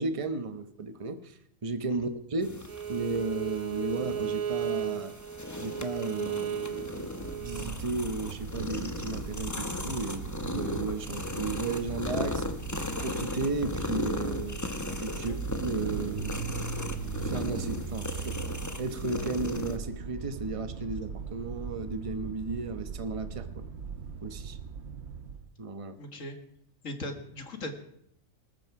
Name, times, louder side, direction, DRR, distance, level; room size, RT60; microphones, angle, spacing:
voice 1, 0.0-5.1 5.6-7.1 7.4-12.4 13.0-14.6 15.0-15.3 15.6-16.7 17.2-23.7 24.2-24.6 25.6-26.0, right 3 dB, 25° right, 9 dB, 1.0 m, -34 dB
sound 1, 2.4-19.8, left 1 dB, 15° left, 1.0 m, -37 dB
Bowed string instrument, 2.7-7.7, right 9 dB, 80° right, 1.5 m, -35 dB
sound 2, 7.1-25.5, right 5 dB, 55° right, 1.0 m, -39 dB
voice 2, 26.0-26.4 26.8-27.7, left 1 dB, 70° left, 6 dB, 2.2 m, -39 dB
20.5 x 13.5 x 4.8 m, 0.70 s
omnidirectional pair, 1.4 m